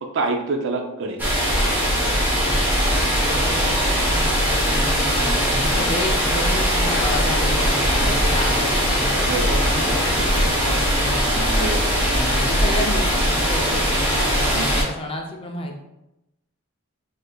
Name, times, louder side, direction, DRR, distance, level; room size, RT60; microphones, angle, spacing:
voice 1, 0.0-1.3 5.7-5.8 7.9-8.3 9.3-9.8 11.3-12.2 13.7-13.8 14.5-14.8, right 3 dB, 55° right, 4 dB, 0.4 m, -28 dB
sound 1, 1.2-14.8, equal, 10° right, 0.7 m, -20 dB
voice 2, 2.3-11.6 12.1-15.8, left 1 dB, 25° left, 1 dB, 0.3 m, -31 dB
sound 2, 6.9-12.6, left 1 dB, 65° left, 0.6 m, -32 dB
4.2 x 2.5 x 2.2 m, 0.92 s
head